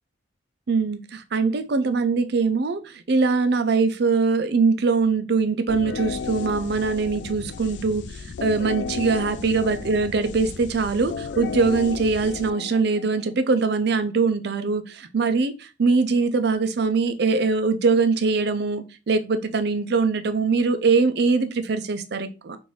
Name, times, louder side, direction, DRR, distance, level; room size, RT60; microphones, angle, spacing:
voice 1, 0.7-22.6, right 4 dB, 55° right, 0.5 m, -22 dB
sound 1, 5.7-13.3, left 5 dB, 65° left, 0.3 m, -34 dB
5.5 x 2.6 x 3.1 m
head